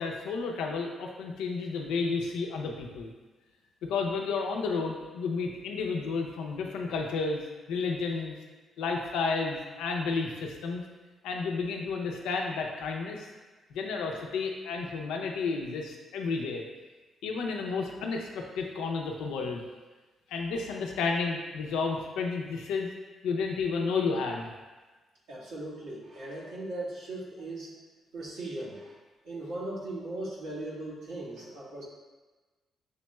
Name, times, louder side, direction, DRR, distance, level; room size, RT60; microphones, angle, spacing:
voice 1, 0.0-3.1 3.9-7.4 7.7-8.3 8.8-10.8 11.2-13.3 13.7-16.6 17.2-19.6 20.3-22.9 23.2-24.5, left 4 dB, 90° left, 1 dB, 0.5 m, -31 dB
voice 2, 25.3-27.7 28.1-28.9 29.2-31.8, right 2 dB, 90° right, -8 dB, 1.4 m, -38 dB
6.5 x 3.0 x 2.2 m, 1.3 s
cardioid pair, 75°, 0 cm